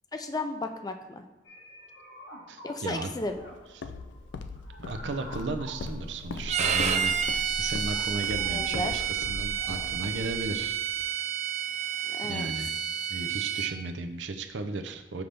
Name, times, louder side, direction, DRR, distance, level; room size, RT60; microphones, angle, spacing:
voice 1, 0.1-1.2 2.6-3.4 8.1-8.2 8.5-8.9 12.0-12.5, left 2 dB, 20° left, 7 dB, 0.4 m, -34 dB
sound 1, 1.5-9.8, left 1 dB, 70° left, 1.2 m, -48 dB
voice 2, 2.5-3.1 3.7-3.8 4.8-10.8 12.2-12.7 13.1-15.2, right 3 dB, 85° right, 6 dB, 0.6 m, -35 dB
Walk footsteps, 3.2-11.1, left 3 dB, 90° left, 0.4 m, -40 dB
Bowed string instrument, 6.5-13.7, right 8 dB, 40° right, 0.4 m, -30 dB
5.8 x 3.3 x 5.2 m, 1.2 s
head